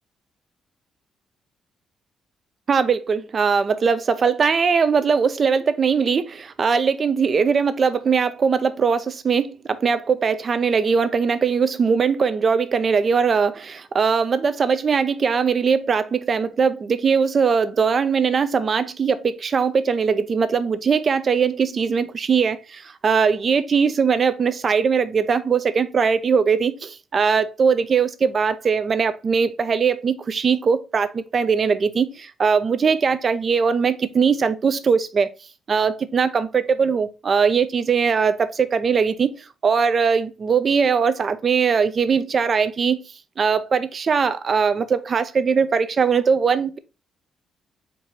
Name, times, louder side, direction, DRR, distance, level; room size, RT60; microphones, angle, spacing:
voice 1, 2.7-35.3 35.7-39.4 39.6-43.0 43.4-46.8, right 6 dB, 45° right, 0.5 m, -20 dB
4.5 x 2.7 x 4.3 m
cardioid pair, 90°, 0 cm